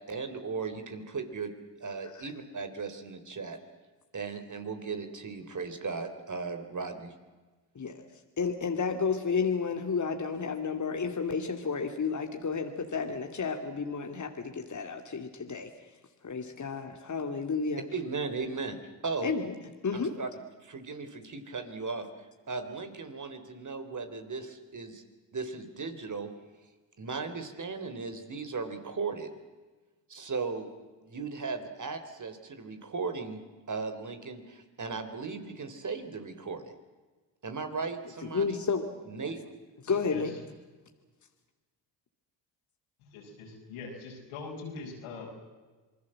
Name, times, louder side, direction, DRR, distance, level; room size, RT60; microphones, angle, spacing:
voice 1, 0.0-1.5 1.8-3.6 4.1-7.1 17.9-18.8 19.0-19.3 19.9-20.3 20.6-22.1 22.5-25.0 25.3-26.3 27.0-29.3 30.1-30.7 31.0-33.4 33.7-36.6 37.4-38.6 39.1-39.4, right 4 dB, 35° right, 8 dB, 3.7 m, -37 dB
voice 2, 8.4-15.7 16.2-17.8 19.2-19.5 19.8-20.1 38.2-38.8 39.8-40.3, left 5 dB, 35° left, 5 dB, 2.6 m, -31 dB
voice 3, 43.0-45.3, left 4 dB, 85° left, 0 dB, 6.6 m, -42 dB
27.0 x 20.5 x 7.7 m, 1.3 s
supercardioid pair, 60°, 50 cm